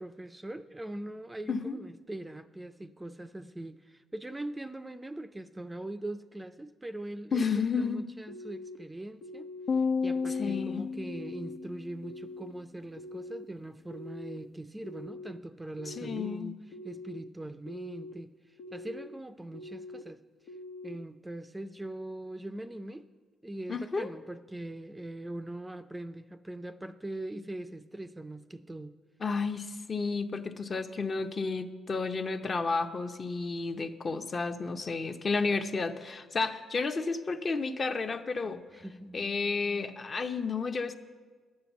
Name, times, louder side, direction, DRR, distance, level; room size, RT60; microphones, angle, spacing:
voice 1, 0.0-9.5 10.0-16.6 16.8-18.3 18.7-20.2 20.8-23.1 23.4-28.9 38.7-39.3, right 1 dB, 10° right, 10 dB, 0.4 m, -41 dB
voice 2, 7.3-8.0 10.4-10.9 15.9-16.5 23.7-24.1 29.2-38.6 39.1-41.0, left 4 dB, 40° left, 7 dB, 0.7 m, -32 dB
sound 1, 8.3-8.8 9.2-9.7 10.2-10.6 11.1-11.6 12.0-12.5 13.0-13.5 13.9-14.4 14.8-15.3 15.8-16.3 16.7-17.2 17.7-18.1 18.6-19.1 19.5-20.0 20.5-21.0, left 2 dB, 80° left, 0.9 m, -44 dB
sound 2, 9.7-12.1, left 5 dB, 55° left, 0.3 m, -32 dB
11.5 x 7.7 x 7.1 m, 1.5 s
cardioid pair, 90°, 0 cm